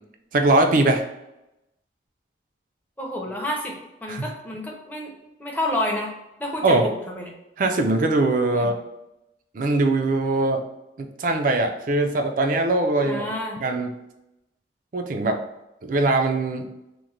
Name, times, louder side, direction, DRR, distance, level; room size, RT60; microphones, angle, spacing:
voice 1, 0.3-1.0 4.1-4.3 6.6-6.9 7.6-8.7 9.5-10.6 11.0-13.2 13.6-13.9 14.9-15.4 15.8-16.7, right 2 dB, 45° right, 5 dB, 0.4 m, -21 dB
voice 2, 3.0-5.1 5.4-6.1 6.4-7.3 8.5-8.7 13.0-13.6, left 1 dB, 10° left, -1 dB, 0.5 m, -29 dB
3.0 x 2.1 x 3.8 m, 0.91 s
head